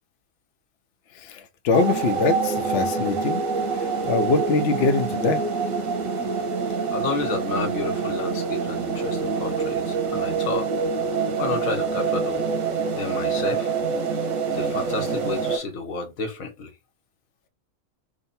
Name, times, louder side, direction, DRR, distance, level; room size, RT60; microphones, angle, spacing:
voice 1, 1.1-3.4 4.0-5.4, left 4 dB, 60° left, 0.8 m, -23 dB
sound 1, 1.7-15.6, right 5 dB, 85° right, 1.4 m, -26 dB
voice 2, 6.7-10.7 11.4-12.5 12.9-13.7 14.5-16.7, left 4 dB, 85° left, 1.4 m, -31 dB
3.7 x 2.2 x 4.1 m
omnidirectional pair, 1.4 m